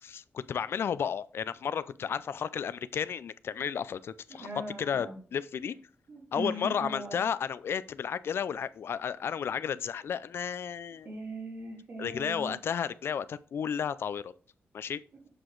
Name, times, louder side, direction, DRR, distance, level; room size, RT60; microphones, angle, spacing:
voice 1, 0.0-4.5 4.8-5.7 6.3-11.1 12.0-14.3 14.7-15.0, left 7 dB, 65° left, 0.3 m, -33 dB
voice 2, 4.4-5.2 6.1-7.2 11.0-12.5, right 2 dB, 55° right, 2.8 m, -39 dB
7.7 x 4.8 x 3.8 m
wide cardioid pair, 125°, 4 cm